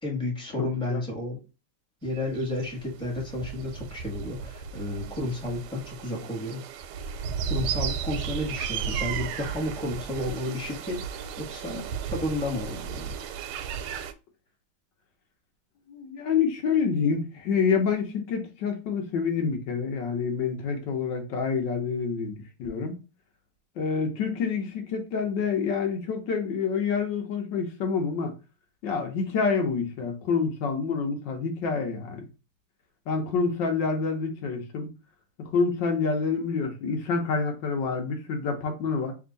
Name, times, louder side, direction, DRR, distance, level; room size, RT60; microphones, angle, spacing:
voice 1, 0.0-1.4 2.0-6.6 7.5-13.4, left 1 dB, 5° left, 0.9 m, -32 dB
voice 2, 0.6-1.0 15.9-23.0 23.8-28.3 28.8-32.2 33.1-34.9 35.4-39.1, left 5 dB, 60° left, 1.5 m, -27 dB
sound 1, 2.1-14.1, right 7 dB, 90° right, 1.5 m, -34 dB
3.6 x 2.7 x 3.9 m
omnidirectional pair, 2.4 m